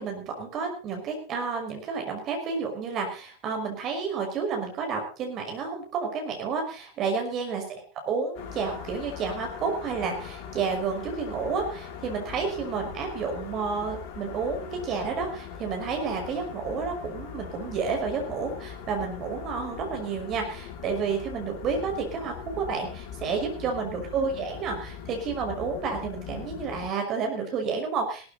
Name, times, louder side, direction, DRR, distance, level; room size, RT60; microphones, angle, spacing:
voice 1, 0.0-7.8 8.1-28.3, right 5 dB, 35° right, 3 dB, 5.7 m, -30 dB
sound 1, 8.3-26.9, left 8 dB, 45° left, 2.6 m, -41 dB
17.5 x 13.5 x 4.2 m, 0.38 s
figure-of-eight pair, 90°, 0 cm